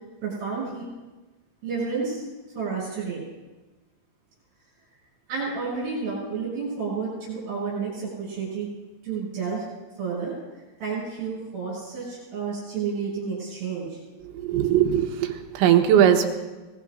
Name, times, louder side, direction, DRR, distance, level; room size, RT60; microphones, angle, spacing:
voice 1, 0.2-0.9 1.6-2.2 2.5-3.2 5.3-8.7 9.0-9.7 10.0-10.4 10.8-14.0, right 5 dB, 60° right, -7 dB, 8.2 m, -30 dB
voice 2, 14.2-16.3, right 10 dB, 90° right, 4 dB, 3.5 m, -20 dB
25.5 x 19.5 x 2.6 m, 1.2 s
omnidirectional pair, 5.2 m